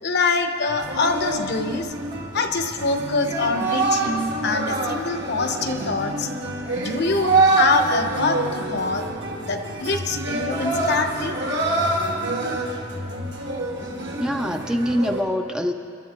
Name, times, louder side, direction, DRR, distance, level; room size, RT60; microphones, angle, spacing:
voice 1, 0.0-1.9 2.3-6.3 6.7-9.0 9.4-11.3, left 3 dB, 60° left, 6 dB, 0.9 m, -24 dB
sound 1, 0.8-15.2, right 2 dB, 60° right, 1.6 m, -26 dB
voice 2, 14.2-15.7, equal, 5° right, 5 dB, 0.5 m, -24 dB
26.0 x 12.0 x 3.0 m, 2.4 s
head